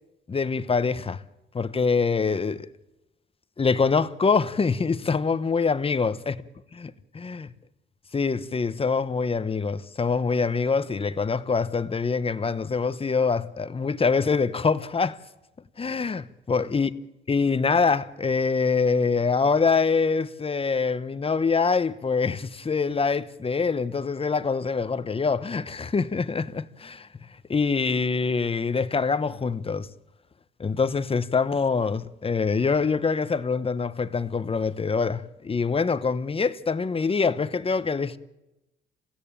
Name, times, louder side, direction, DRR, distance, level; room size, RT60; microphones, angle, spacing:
voice 1, 0.3-1.2 1.5-2.7 3.6-6.4 6.8-7.5 8.1-15.2 15.8-16.9 17.3-27.1 27.5-29.9 30.6-38.2, left 5 dB, 30° left, 1.0 m, -25 dB
28.0 x 16.0 x 8.9 m
cardioid pair, 90°, 20 cm